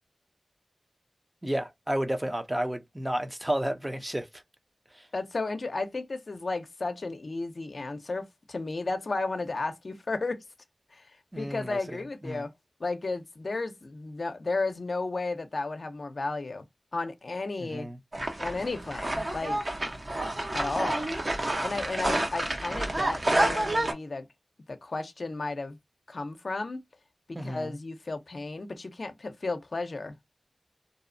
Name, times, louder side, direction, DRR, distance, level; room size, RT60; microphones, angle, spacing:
voice 1, 1.4-4.3 4.9-5.1 11.3-12.5 17.6-18.0 27.3-27.8, right 1 dB, 20° right, 0.5 m, -32 dB
voice 2, 5.1-10.4 10.9-11.0 11.4-12.5 12.8-16.6 16.9-17.9 18.4-19.6 20.5-21.1 21.6-24.3 24.7-25.8 26.1-26.8 27.3-30.1, left 3 dB, 70° left, 0.5 m, -33 dB
sound 1, 18.1-23.9, right 1 dB, 50° right, 0.8 m, -29 dB
2.7 x 2.0 x 2.5 m
cardioid pair, 40°, 0 cm